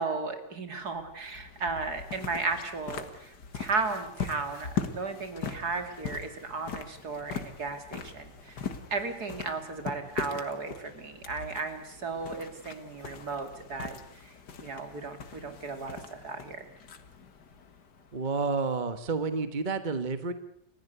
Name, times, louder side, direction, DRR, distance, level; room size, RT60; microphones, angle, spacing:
voice 1, 0.0-13.9 14.2-14.3 14.6-16.6, right 4 dB, 60° right, 7 dB, 3.2 m, -35 dB
sound 1, 0.9-18.5, left 6 dB, 70° left, 2.3 m, -41 dB
voice 2, 18.1-20.3, right 4 dB, 30° right, 10 dB, 1.3 m, -30 dB
30.0 x 15.0 x 8.2 m, 0.74 s
omnidirectional pair, 1.9 m